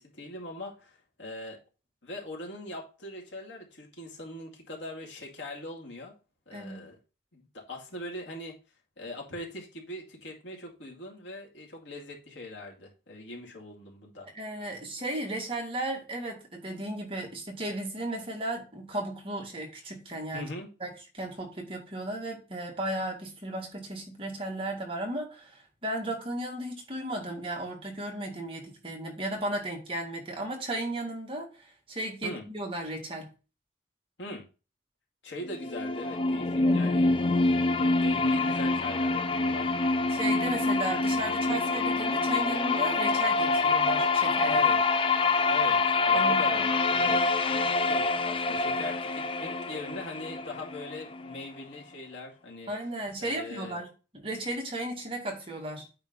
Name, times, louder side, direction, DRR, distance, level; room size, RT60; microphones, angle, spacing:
voice 1, 0.0-1.6 2.0-6.1 6.5-7.0 7.3-8.5 9.0-14.3 20.3-20.7 32.2-32.4 34.2-34.5 35.2-37.1 37.8-39.7 44.4-44.8 45.5-52.7 53.2-53.8, left 2 dB, 90° left, 0 dB, 2.4 m, -41 dB
voice 2, 6.5-6.9 14.3-20.5 20.8-33.3 36.6-36.9 40.1-44.6 46.1-46.7 47.0-47.3 52.7-53.9 54.1-55.9, right 1 dB, 30° right, 1 dB, 2.0 m, -35 dB
sound 1, 35.4-51.4, left 3 dB, 30° left, 0.5 m, -26 dB
8.9 x 3.5 x 5.3 m, 0.32 s
head